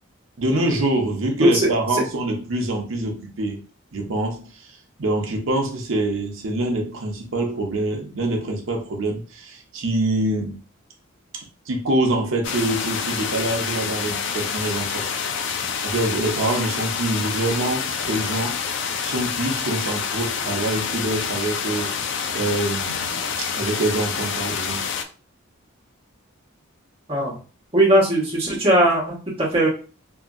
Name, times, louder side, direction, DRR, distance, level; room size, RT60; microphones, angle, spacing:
voice 1, 0.4-3.6 3.9-4.7 5.0-10.6 11.3-15.1 15.8-18.6 19.0-24.9, right 2 dB, 70° right, 0.7 m, -25 dB
sound 1, 12.4-25.0, left 6 dB, 60° left, 0.3 m, -27 dB
voice 2, 27.7-29.7, right 1 dB, 25° right, 1.2 m, -18 dB
2.8 x 2.6 x 2.5 m
head